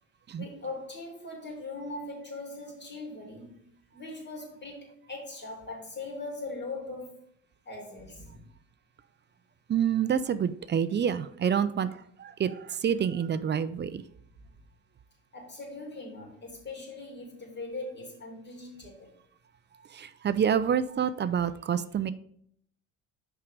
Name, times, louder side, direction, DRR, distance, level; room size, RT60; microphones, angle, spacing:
voice 1, 0.4-7.2 7.6-8.4 15.3-19.2, left 2 dB, 30° left, 3.0 m, -40 dB
voice 2, 9.7-11.9 12.2-14.0 19.9-22.1, right 8 dB, 30° right, 0.5 m, -27 dB
5.7 x 4.8 x 5.2 m
supercardioid pair, 70°, 33 cm